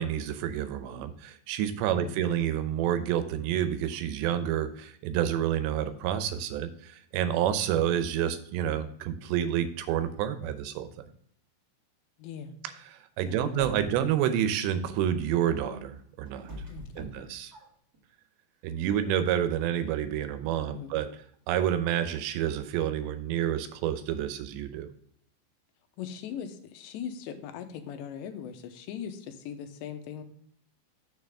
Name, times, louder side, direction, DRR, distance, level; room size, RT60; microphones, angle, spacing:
voice 1, 0.0-11.0 12.9-16.5 17.0-17.5 18.6-21.1 21.5-24.9, right 10 dB, 85° right, 10 dB, 2.9 m, -29 dB
voice 2, 12.2-12.6 13.2-14.0 16.7-17.3 20.6-20.9 26.0-30.2, left 8 dB, 85° left, 8 dB, 3.0 m, -40 dB
sound 1, 13.4-14.1 15.7-18.0, equal, 35° right, 1.5 m, -44 dB
6.7 x 6.6 x 3.5 m, 0.64 s
omnidirectional pair, 5.0 m